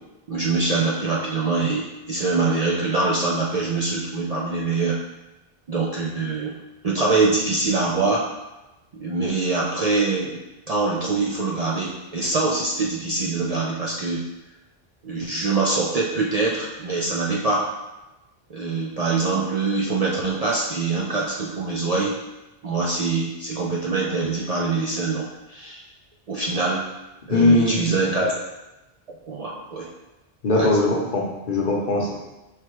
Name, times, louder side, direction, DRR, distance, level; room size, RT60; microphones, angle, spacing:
voice 1, 0.3-5.0 5.7-6.6 6.8-8.3 8.9-10.4 10.7-14.3 15.0-17.7 18.5-22.2 22.6-25.8 26.3-26.9 27.3-28.3 29.3-29.9 30.5-30.7, right 3 dB, 55° right, -3 dB, 0.4 m, -24 dB
voice 2, 27.3-28.0 30.4-32.1, left 2 dB, 55° left, -2 dB, 0.9 m, -20 dB
4.4 x 3.3 x 3.0 m, 1.0 s
omnidirectional pair, 1.0 m